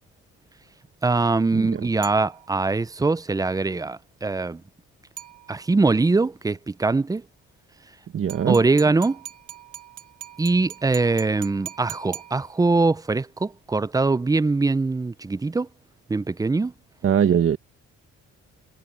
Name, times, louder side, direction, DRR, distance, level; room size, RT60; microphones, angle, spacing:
voice 1, 1.0-4.6 5.5-7.2 8.5-9.2 10.4-15.7 16.1-16.7, right 3 dB, 10° right, 0.5 m, -22 dB
sound 1, 2.0-2.9 5.2-5.9 8.3-12.9, right 11 dB, 80° right, 2.6 m, -42 dB
voice 2, 8.1-8.6 17.0-17.6, right 8 dB, 45° right, 1.2 m, -20 dB
cardioid pair, 90°, 30 cm